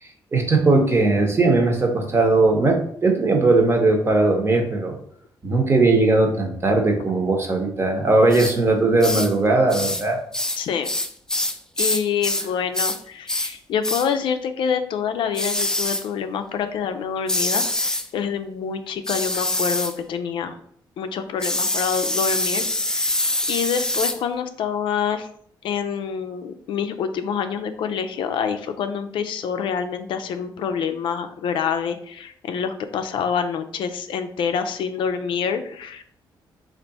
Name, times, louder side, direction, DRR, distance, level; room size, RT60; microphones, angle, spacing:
voice 1, 0.3-5.0 5.4-10.2, right 3 dB, 30° right, 3 dB, 0.9 m, -19 dB
sound 1, 8.3-8.5 9.0-9.3 9.7-10.1 10.3-12.5 12.7-13.0 13.3-13.5 13.8-14.1 15.3-16.1 17.3-18.1 19.0-19.9 21.4-24.2, left 1 dB, 10° left, 0.3 m, -24 dB
voice 2, 10.6-10.9 11.8-20.6 21.0-23.2 23.5-25.3 25.6-36.0, left 7 dB, 75° left, 8 dB, 0.4 m, -26 dB
3.3 x 2.5 x 4.0 m, 0.63 s
cardioid pair, 85°, 9 cm